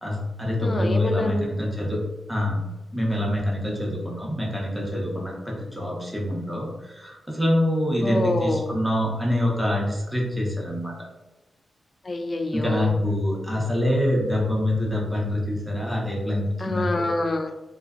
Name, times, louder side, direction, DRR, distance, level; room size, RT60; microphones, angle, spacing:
voice 1, 0.0-2.0 2.3-2.6 2.9-10.9 12.5-17.1, left 1 dB, ahead, -3 dB, 0.9 m, -25 dB
voice 2, 0.6-1.5 8.0-8.7 12.0-12.9 16.6-17.5, left 2 dB, 40° left, 6 dB, 0.3 m, -26 dB
2.5 x 2.3 x 2.4 m, 1.1 s
cardioid pair, 60°, 0 cm